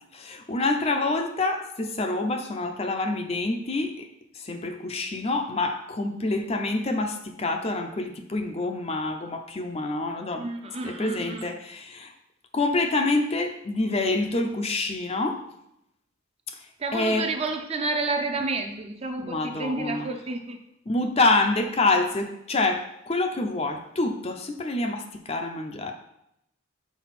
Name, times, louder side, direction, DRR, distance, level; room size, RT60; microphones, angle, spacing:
voice 1, 0.0-4.1 4.3-10.5 10.8-12.1 12.5-15.4 16.5-16.6 16.9-17.3 19.2-20.1 20.9-25.9, left 2 dB, 30° left, 5 dB, 0.5 m, -27 dB
voice 2, 10.4-11.5 16.8-20.6, right 3 dB, 30° right, 4 dB, 0.6 m, -30 dB
6.1 x 4.7 x 4.2 m, 0.81 s
head